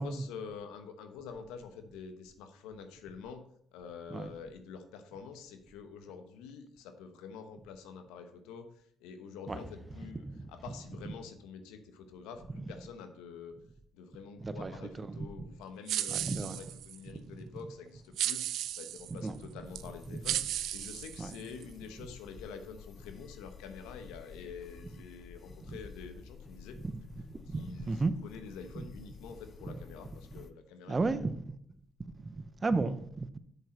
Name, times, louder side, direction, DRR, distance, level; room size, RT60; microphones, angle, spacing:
voice 1, 0.0-3.4 3.7-8.7 9.0-13.5 13.9-26.7 27.5-31.3, left 6 dB, 85° left, 1.1 m, -47 dB
sound 1, 9.5-12.7, right 1 dB, 5° right, 1.8 m, -52 dB
voice 2, 14.4-14.7 15.0-15.3 16.1-16.6 17.1-17.5 19.1-19.4 20.1-20.4 21.2-21.3 25.6-25.8 26.8-28.2 28.8-28.9 29.7-29.8 30.3-30.4 30.9-31.5 32.1-33.4, right 3 dB, 30° right, 0.8 m, -35 dB
sound 2, 15.9-17.0 18.2-19.1 19.7-19.9 20.2-21.6, right 12 dB, 75° right, 0.4 m, -35 dB
sound 3, 19.7-30.5, left 6 dB, 45° left, 0.7 m, -52 dB
7.6 x 7.2 x 4.4 m
supercardioid pair, 60°, 0 cm